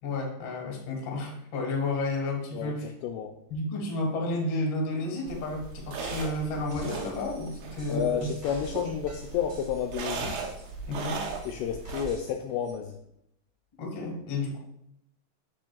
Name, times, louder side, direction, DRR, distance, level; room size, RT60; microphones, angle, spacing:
voice 1, 0.0-2.9 3.5-8.3 10.9-11.2 13.8-14.6, left 2 dB, 55° left, -1 dB, 1.7 m, -31 dB
voice 2, 2.5-3.4 7.9-10.4 11.5-13.0, left 8 dB, 85° left, 3 dB, 2.4 m, -31 dB
sound 1, 5.3-12.2, right 4 dB, 75° right, 2.3 m, -38 dB
sound 2, 6.1-6.4 6.6-10.8 11.2-12.4 12.6-12.7, equal, 30° right, 0.8 m, -46 dB
7.5 x 7.1 x 2.3 m, 0.78 s
omnidirectional pair, 5.1 m